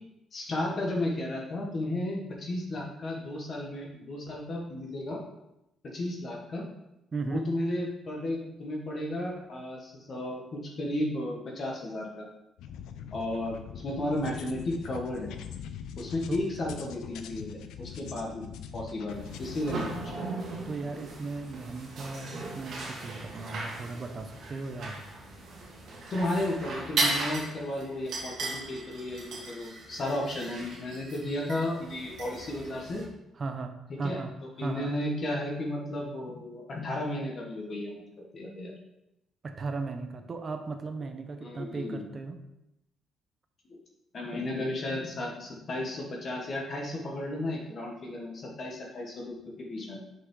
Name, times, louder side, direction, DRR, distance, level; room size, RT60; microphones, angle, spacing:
voice 1, 0.3-5.2 5.8-6.6 7.2-12.3 13.1-15.3 16.0-18.5 18.7-20.3 26.1-33.0 33.9-34.2 34.6-38.7 41.4-42.0 44.1-50.0, left 1 dB, 35° left, 0 dB, 1.3 m, -34 dB
voice 2, 7.1-7.4 16.3-16.5 20.7-25.0 33.4-34.3 34.6-34.9 39.4-42.4, right 4 dB, 30° right, 7 dB, 0.6 m, -36 dB
sound 1, 12.6-20.2, left 8 dB, 85° left, 0.5 m, -43 dB
sound 2, 19.1-33.0, right 2 dB, 55° right, 1.8 m, -37 dB
6.0 x 5.5 x 3.7 m, 0.88 s
cardioid pair, 165°, 0 cm